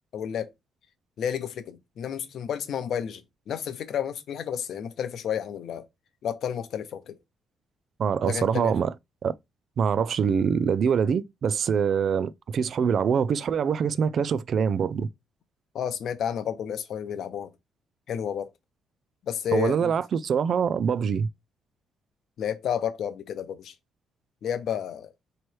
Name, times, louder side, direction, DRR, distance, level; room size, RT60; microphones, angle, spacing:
voice 1, 0.1-0.5 1.2-3.2 3.5-5.9 6.2-7.2 8.2-8.7 15.7-17.5 18.1-18.5 19.3-19.9 22.4-23.7 24.4-25.1, left 8 dB, 70° left, 0.7 m, -31 dB
voice 2, 8.0-8.9 9.2-9.3 9.8-15.1 19.5-21.3, right 7 dB, 55° right, 0.3 m, -24 dB
3.1 x 3.0 x 4.5 m
cardioid pair, 90°, 0 cm